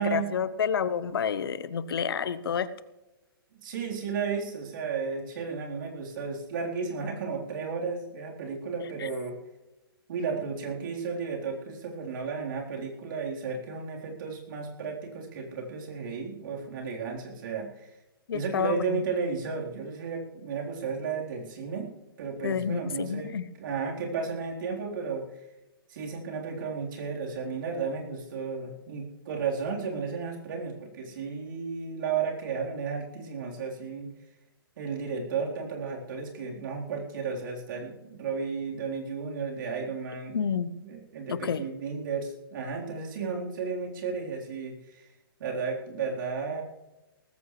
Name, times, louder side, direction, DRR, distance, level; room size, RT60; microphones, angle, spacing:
voice 1, 0.0-2.7 18.3-19.0 22.4-23.4 40.3-40.7 41.3-41.6, left 7 dB, 70° left, 15 dB, 1.0 m, -29 dB
voice 2, 3.6-9.4 10.1-17.9 18.3-21.9 22.2-23.3 23.6-25.3 25.9-34.1 34.8-45.1 45.4-46.6, right 5 dB, 55° right, -1 dB, 4.0 m, -33 dB
18.5 x 15.0 x 3.3 m, 1.0 s
hypercardioid pair, 130°, 13 cm